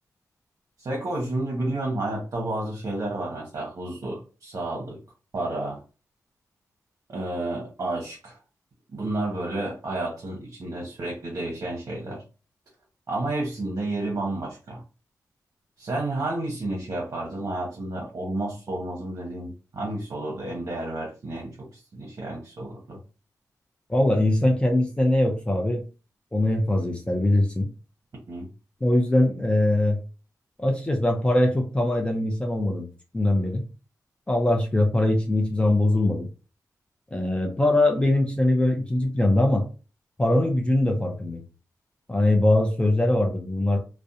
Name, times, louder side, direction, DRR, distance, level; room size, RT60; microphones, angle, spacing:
voice 1, 0.8-5.0 5.3-5.8 7.1-8.4 8.9-12.2 13.1-14.8 15.8-23.0 28.3-28.5, right 2 dB, 60° right, -2 dB, 0.8 m, -31 dB
voice 2, 23.9-25.8 26.3-27.7 28.8-30.0 30.6-32.9 33.1-33.6 34.3-36.3 37.1-39.6 40.2-41.4 42.1-43.8, left 1 dB, 15° left, 2 dB, 0.5 m, -22 dB
2.4 x 2.1 x 2.7 m, 0.33 s
cardioid pair, 75°, 7 cm